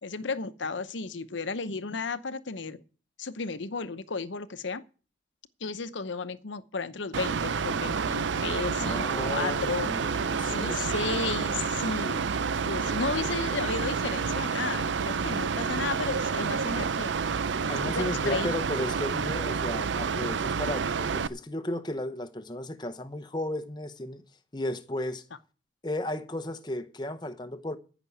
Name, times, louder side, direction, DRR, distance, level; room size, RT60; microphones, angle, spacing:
voice 1, 0.0-2.8 3.2-4.8 5.6-12.3 12.6-17.2 17.6-18.5, left 4 dB, 80° left, 0.8 m, -34 dB
Mechanical fan, 7.1-21.3, right 5 dB, 80° right, 0.5 m, -29 dB
voice 2, 8.7-10.9 17.7-24.2 24.5-25.2 25.8-27.8, left 1 dB, 25° left, 0.8 m, -34 dB
14.5 x 6.0 x 8.3 m
head